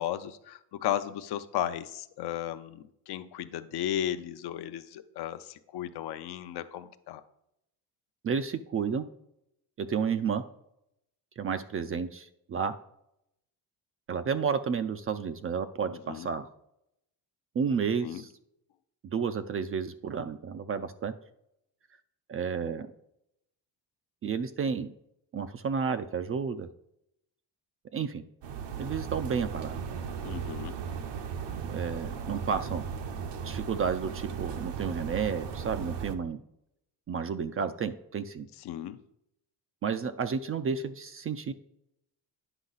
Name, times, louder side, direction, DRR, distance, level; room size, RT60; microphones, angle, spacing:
voice 1, 0.0-7.2 16.1-16.3 18.0-18.2 30.2-30.8 38.6-39.0, left 11 dB, 60° left, 10 dB, 0.7 m, -35 dB
voice 2, 8.2-9.1 9.8-10.4 11.4-12.7 14.1-16.5 17.6-18.3 19.0-21.1 22.3-22.9 24.2-24.9 25.3-26.7 27.9-28.2 28.8-29.7 31.7-32.9 33.4-36.4 37.1-38.5 39.8-41.5, right 6 dB, 30° right, 10 dB, 0.4 m, -31 dB
sound 1, 28.4-36.2, right 6 dB, 65° right, 0.9 m, -36 dB
9.9 x 5.3 x 4.0 m, 0.78 s
cardioid pair, 115°, 45 cm